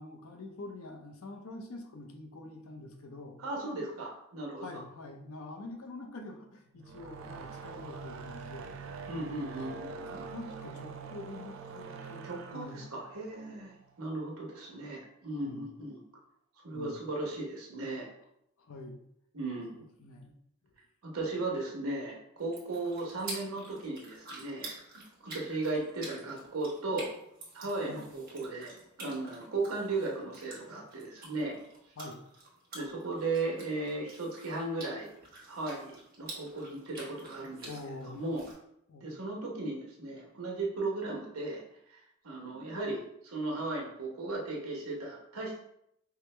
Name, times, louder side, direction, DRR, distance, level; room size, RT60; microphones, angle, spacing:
voice 1, 0.0-3.4 4.5-8.8 9.6-12.9 15.4-15.8 16.7-17.1 18.6-19.0 20.0-20.3 27.9-28.1 32.0-32.2 37.6-38.2 38.9-39.1, left 2 dB, 75° left, 3 dB, 0.6 m, -45 dB
voice 2, 3.4-4.8 9.1-10.3 12.2-13.7 14.0-16.0 16.6-18.1 19.3-19.8 21.0-24.7 25.2-27.1 27.5-28.7 29.0-31.6 32.7-35.1 35.5-37.7 38.0-38.4 39.0-41.6 41.9-45.6, right 2 dB, 80° right, -2 dB, 1.0 m, -36 dB
sound 1, 6.8-14.1, right 5 dB, 65° right, 0.3 m, -44 dB
sound 2, 22.4-38.5, right 2 dB, 40° right, 0.9 m, -48 dB
4.7 x 2.1 x 3.2 m, 0.76 s
head